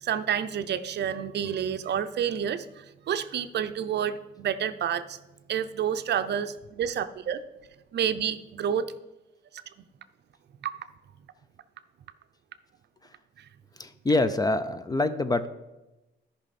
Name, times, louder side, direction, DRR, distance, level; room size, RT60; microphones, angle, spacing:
voice 1, 0.0-5.2 5.5-7.4 7.9-8.9 10.6-10.7, right 8 dB, 60° right, 11 dB, 0.6 m, -29 dB
voice 2, 13.8-15.5, left 2 dB, 20° left, 12 dB, 0.6 m, -25 dB
13.5 x 5.6 x 4.2 m, 1.0 s
cardioid pair, 90°, 20 cm